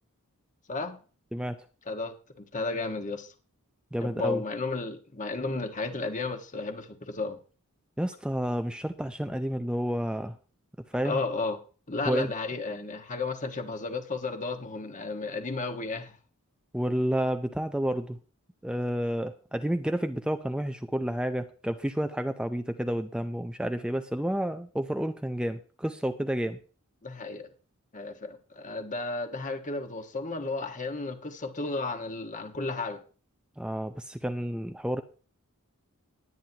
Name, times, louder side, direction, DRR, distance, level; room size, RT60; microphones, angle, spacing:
voice 1, 1.9-3.3 4.0-7.4 11.0-11.6 11.9-16.2 27.0-27.5 27.9-33.0, left 3 dB, 35° left, 1.5 m, -33 dB
voice 2, 3.9-4.4 8.0-10.4 10.9-11.2 12.1-12.3 16.7-18.2 18.6-26.6 33.6-35.0, equal, 5° right, 0.5 m, -30 dB
21.0 x 9.5 x 2.9 m
head